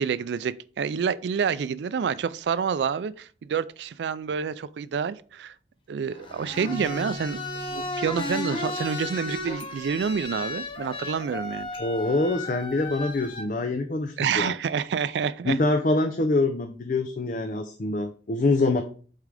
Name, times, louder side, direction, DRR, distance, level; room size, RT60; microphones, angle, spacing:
voice 1, 0.0-5.5 5.9-7.4 7.7-11.7 14.2-15.6, right 6 dB, 80° right, 0.3 m, -28 dB
sound 1, 6.1-13.4, left 2 dB, 30° left, 0.8 m, -34 dB
sound 2, 6.6-10.3, right 1 dB, 45° right, 1.0 m, -43 dB
voice 2, 11.8-14.5 15.5-18.8, left 2 dB, 45° left, 0.5 m, -25 dB
8.2 x 3.7 x 3.3 m
head